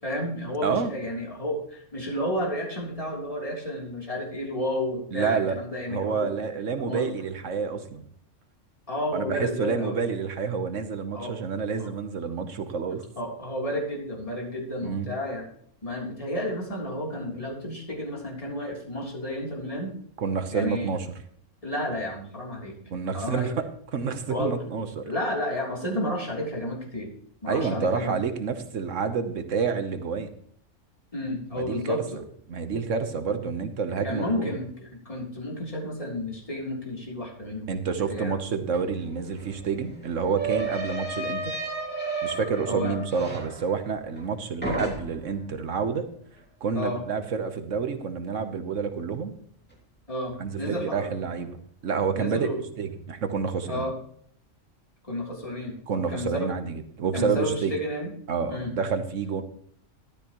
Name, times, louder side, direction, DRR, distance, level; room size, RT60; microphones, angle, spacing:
voice 1, 0.0-6.3 6.8-7.1 8.9-10.0 11.1-11.3 11.7-11.9 13.1-15.5 15.8-19.9 20.5-21.0 21.6-22.7 23.1-23.5 24.3-24.5 25.0-27.1 27.4-28.2 31.1-32.0 34.0-37.8 38.1-38.4 42.6-43.0 46.7-47.0 50.1-51.2 52.1-52.6 53.7-53.9 55.1-56.5 57.1-58.1 58.5-58.7, left 1 dB, 25° left, -2 dB, 3.4 m, -31 dB
voice 2, 5.1-5.6 5.9-8.1 9.1-13.0 14.8-15.1 20.2-21.1 22.9-23.7 23.9-25.1 27.5-30.3 31.6-32.0 32.5-34.6 37.7-41.5 42.2-46.1 46.6-49.3 50.4-51.6 51.8-52.5 52.8-53.8 55.9-57.7 58.3-59.4, right 5 dB, 75° right, 9 dB, 1.4 m, -28 dB
sound 1, 38.7-38.8 39.1-44.3 44.6-45.4, right 3 dB, 5° left, 2.6 m, -33 dB
13.5 x 12.5 x 3.1 m, 0.62 s
omnidirectional pair, 1.3 m